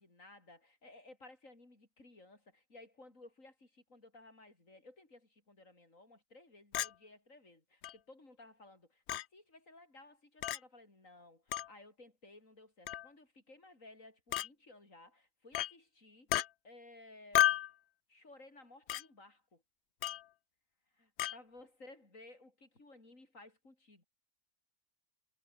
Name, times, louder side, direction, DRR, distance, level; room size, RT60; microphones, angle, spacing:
voice 1, 0.0-16.3 16.6-17.5 18.1-19.6 21.0-24.1, left 2 dB, 85° left, 6.0 m, -57 dB
Chink clink, 6.7-6.9 7.8-7.9 9.1-9.2 10.4-10.6 11.5-11.7 12.9-13.1 14.3-14.5 15.5-15.7 16.3-16.5 17.3-17.7 18.9-19.0 20.0-20.2 21.2-21.4, left 13 dB, 65° left, 0.8 m, -32 dB
omnidirectional pair, 1.3 m